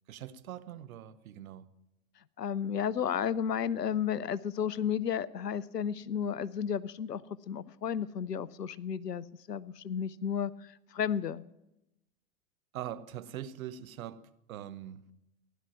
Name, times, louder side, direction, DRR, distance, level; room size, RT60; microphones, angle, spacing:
voice 1, 0.1-1.7 12.7-15.1, right 11 dB, 60° right, 1.0 m, -43 dB
voice 2, 2.4-11.4, left 8 dB, 85° left, 0.7 m, -33 dB
16.0 x 11.5 x 6.0 m
figure-of-eight pair, 95°, 47 cm